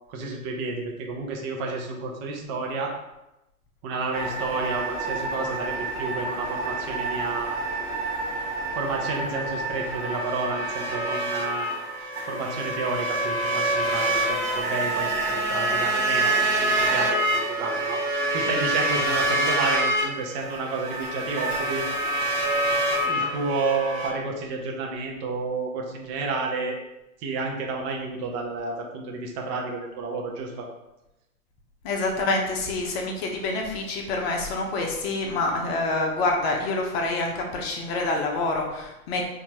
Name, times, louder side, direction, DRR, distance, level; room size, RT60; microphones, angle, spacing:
voice 1, 0.1-2.9 3.8-7.5 8.7-11.7 12.3-18.0 18.3-21.9 23.0-26.8 27.2-30.7, right 3 dB, 30° right, 0 dB, 0.9 m, -30 dB
sound 1, 4.1-24.1, right 1 dB, 5° right, 0.3 m, -27 dB
voice 2, 31.8-39.3, left 2 dB, 40° left, 1 dB, 1.0 m, -27 dB
5.7 x 2.9 x 2.9 m, 0.93 s
figure-of-eight pair, 105°, 45 cm